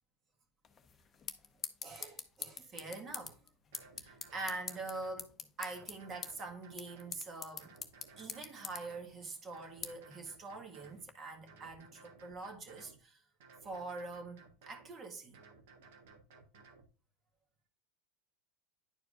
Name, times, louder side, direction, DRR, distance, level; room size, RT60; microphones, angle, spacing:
sound 1, 0.6-11.1, left 6 dB, 25° left, 0.8 m, -48 dB
voice 1, 1.8-3.4 4.0-5.3 5.6-7.7 8.2-13.2 13.6-15.4, right 3 dB, 30° right, 1.7 m, -44 dB
sound 2, 3.2-3.3 3.7-5.2 5.7-7.2 7.6-9.1 9.5-11.1 11.5-13.0 13.4-14.9 15.3-16.9, right 4 dB, 65° right, 1.3 m, -59 dB
10.0 x 4.6 x 2.5 m
hypercardioid pair, 95°, 0 cm